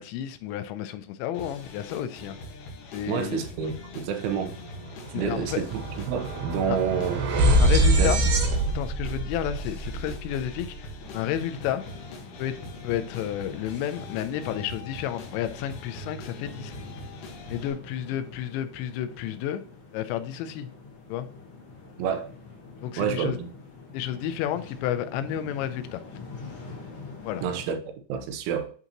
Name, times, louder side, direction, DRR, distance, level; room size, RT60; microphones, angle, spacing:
voice 1, 0.0-2.4 2.9-3.4 5.1-5.6 6.7-6.8 7.6-8.2 8.7-11.8 12.4-12.5 12.8-16.7 17.5-19.6 19.9-20.7 21.1-21.3 22.8-23.4 23.9-26.0 27.3-27.4, left 11 dB, 85° left, 2.7 m, -31 dB
sound 1, 1.3-17.7, left 2 dB, 70° left, 3.2 m, -42 dB
voice 2, 3.1-4.5 5.2-7.2 7.9-8.1 22.0-22.3 23.0-23.4 27.4-27.8 28.1-28.7, right 7 dB, 80° right, 3.2 m, -28 dB
sound 2, 4.2-4.4 4.7-10.9, right 1 dB, 65° right, 2.9 m, -25 dB
sound 3, 11.0-27.6, left 4 dB, 45° left, 2.0 m, -45 dB
11.0 x 4.0 x 2.9 m
omnidirectional pair, 5.5 m